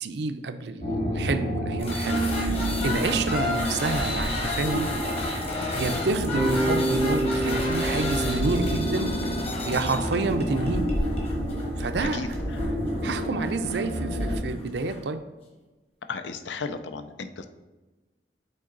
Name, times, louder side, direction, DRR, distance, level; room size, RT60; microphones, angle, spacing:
voice 1, 0.0-4.9 5.7-9.1 9.6-10.8 11.8-12.4 13.0-15.2, right 3 dB, 70° right, 9 dB, 0.5 m, -29 dB
sound 1, 0.8-14.4, equal, 50° left, 1.6 m, -29 dB
sound 2, 1.8-15.0, left 2 dB, 35° left, 1.2 m, -33 dB
Bass guitar, 6.4-10.4, right 1 dB, 10° right, 0.5 m, -29 dB
voice 2, 16.1-17.5, left 4 dB, 85° left, 8 dB, 0.5 m, -34 dB
7.7 x 3.9 x 3.8 m, 1.2 s
head